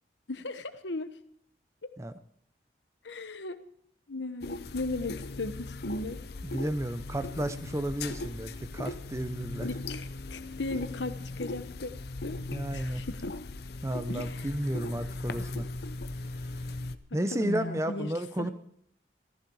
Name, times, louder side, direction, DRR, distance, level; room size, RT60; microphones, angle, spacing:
voice 1, 0.3-1.1 1.8-1.9 3.0-3.6 4.1-6.2 9.6-11.9 12.2-12.4 12.7-13.3 14.1-14.4 17.3-18.1 18.4-18.5, left 2 dB, 85° left, 10 dB, 1.2 m, -36 dB
sound 1, 4.4-17.0, left 2 dB, 60° left, 0.7 m, -38 dB
voice 2, 6.4-9.7 12.5-13.0 13.8-15.7 17.1-18.5, right 1 dB, 15° right, 11 dB, 0.7 m, -32 dB
14.5 x 14.0 x 4.8 m, 0.67 s
head